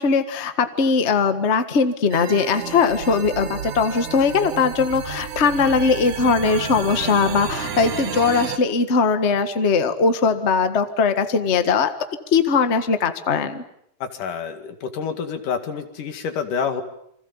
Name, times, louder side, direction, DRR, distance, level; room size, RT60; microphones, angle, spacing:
voice 1, 0.0-11.9 12.3-13.6, left 5 dB, 30° left, 9 dB, 1.3 m, -20 dB
sound 1, 2.1-8.6, right 8 dB, 65° right, 3.1 m, -31 dB
voice 2, 14.0-16.8, left 6 dB, 85° left, 7 dB, 3.8 m, -28 dB
29.0 x 25.0 x 7.2 m, 0.71 s
omnidirectional pair, 3.6 m